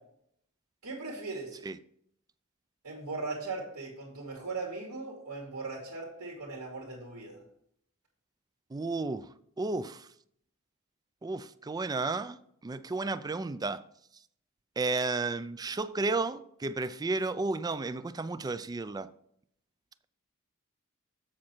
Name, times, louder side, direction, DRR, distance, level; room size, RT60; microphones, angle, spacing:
voice 1, 0.8-1.7 2.8-7.4, right 3 dB, 85° right, 2.4 m, -39 dB
voice 2, 8.7-9.3 9.6-10.1 11.2-12.4 12.6-13.8 14.8-19.1, right 3 dB, 15° right, 0.3 m, -32 dB
7.3 x 7.3 x 4.5 m
head